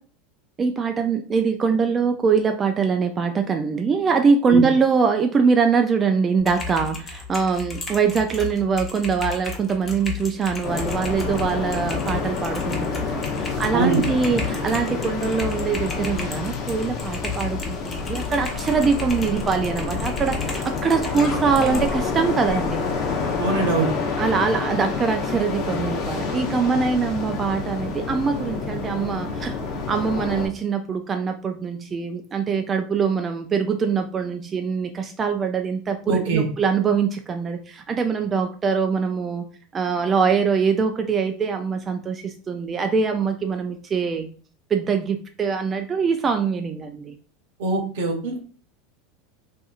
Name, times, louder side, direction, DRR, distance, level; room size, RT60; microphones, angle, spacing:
voice 1, 0.6-22.9 24.2-29.6 29.9-39.4 39.7-44.3 44.7-47.2, right 5 dB, 25° right, 5 dB, 0.3 m, -23 dB
Typing, 6.4-21.9, left 5 dB, 25° left, 0.9 m, -34 dB
sound 1, 10.6-30.5, left 4 dB, 50° left, 0.7 m, -28 dB
voice 2, 13.7-14.1 23.4-23.9 36.1-36.4 47.6-48.4, right 4 dB, 75° right, 2 dB, 0.9 m, -22 dB
2.7 x 2.5 x 2.4 m, 0.41 s
supercardioid pair, 105°, 0 cm